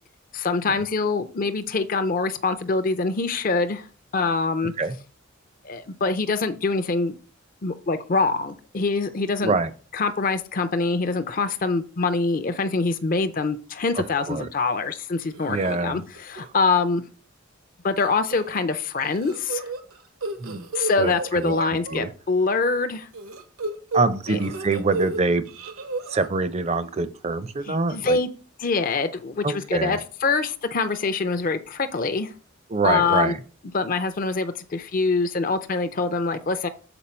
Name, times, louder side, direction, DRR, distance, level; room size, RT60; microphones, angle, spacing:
voice 1, 0.3-3.9 4.1-4.7 5.6-7.2 7.6-9.5 9.9-17.0 17.8-19.7 20.7-23.1 24.3-24.4 27.7-28.3 28.6-32.3 32.8-33.3 33.7-36.7, left 4 dB, 40° left, 9 dB, 0.5 m, -24 dB
voice 2, 13.9-14.5 15.5-16.0 20.4-20.7 21.0-21.5 21.9-22.1 23.9-25.4 26.1-28.2 29.4-30.0 32.7-33.4, right 3 dB, 30° right, 12 dB, 0.5 m, -25 dB
sound 1, 15.3-15.7 16.1-16.5 16.7-16.8 18.0-18.6 19.0-22.0 23.1-25.2 25.5-26.3, right 3 dB, 85° right, 1.0 m, -33 dB
6.9 x 4.5 x 4.3 m, 0.39 s
head